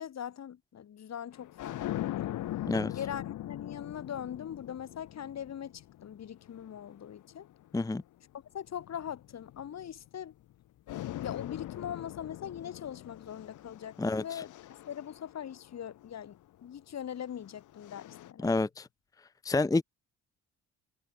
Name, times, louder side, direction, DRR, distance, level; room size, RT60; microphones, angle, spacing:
voice 1, 0.0-2.4 2.9-7.5 8.5-10.3 11.2-14.5 14.9-18.5, left 9 dB, 60° left, 5.4 m, -41 dB
sound 1, 1.3-7.9 8.7-10.5 10.9-16.2 17.2-18.3, left 14 dB, 80° left, 2.9 m, -42 dB
voice 2, 14.0-14.4 18.4-18.9 19.4-19.8, left 2 dB, 10° left, 0.7 m, -28 dB
cardioid pair, 90°, 30 cm